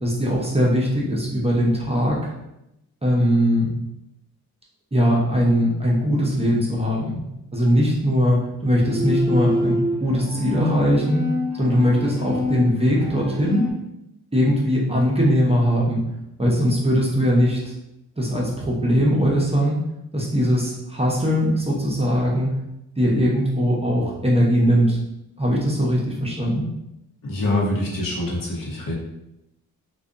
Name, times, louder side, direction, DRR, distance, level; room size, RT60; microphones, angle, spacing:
voice 1, 0.0-2.3 3.0-3.7 4.9-7.3 7.5-11.2 11.6-13.7 14.3-16.0 16.4-17.6 18.2-19.8 20.1-22.5 23.0-25.0 25.4-26.7, equal, 15° right, -4 dB, 0.6 m, -20 dB
Bowed string instrument, 8.7-13.7, left 1 dB, 45° left, 1.3 m, -27 dB
voice 2, 27.2-28.9, left 1 dB, 60° left, -3 dB, 0.9 m, -25 dB
2.5 x 2.2 x 2.4 m, 0.87 s
cardioid pair, 65°, 38 cm